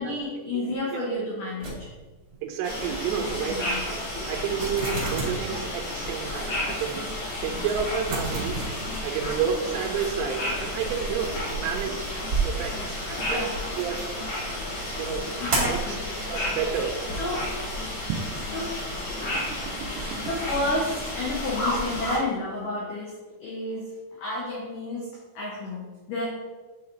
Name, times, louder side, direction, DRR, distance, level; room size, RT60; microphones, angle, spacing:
voice 1, 0.0-1.9 3.5-3.8 13.3-13.6 15.6-16.0 17.2-17.5 18.5-18.8 20.3-23.1 23.4-23.9 24.2-26.3, left 2 dB, 85° left, -4 dB, 1.8 m, -30 dB
voice 2, 0.5-1.2 2.4-4.0 4.3-7.1 7.4-8.6 9.0-13.5 13.8-14.0 15.0-15.3 15.6-16.0 16.3-17.0 18.1-18.4 19.3-20.3, right 7 dB, 85° right, 2 dB, 2.7 m, -31 dB
sound 1, 1.6-2.4 2.7-2.9 3.4-3.5 3.9-4.0 4.3-5.6 6.1-6.2 6.8-6.9 7.1-7.2 7.6-9.5 9.8-13.5 15.5-15.9 16.5-17.3, right 3 dB, 55° right, 1.4 m, -32 dB
sound 2, 2.6-22.2, left 1 dB, 70° left, 1.6 m, -32 dB
8.7 x 3.0 x 3.8 m, 1.3 s
omnidirectional pair, 5.2 m